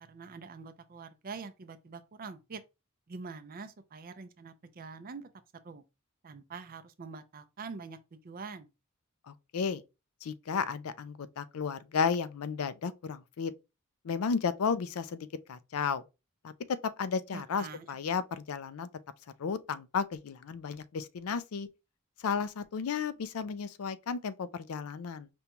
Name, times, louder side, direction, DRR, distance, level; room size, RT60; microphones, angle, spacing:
voice 1, 0.1-2.6 3.1-5.3 5.6-5.8 6.2-8.7 17.3-17.9, right 4 dB, 40° right, 0.5 m, -45 dB
voice 2, 9.3-9.8 10.2-13.5 14.0-16.0 16.4-18.9 19.4-21.7 22.2-25.3, left 6 dB, 85° left, 0.4 m, -33 dB
5.2 x 2.2 x 2.9 m
head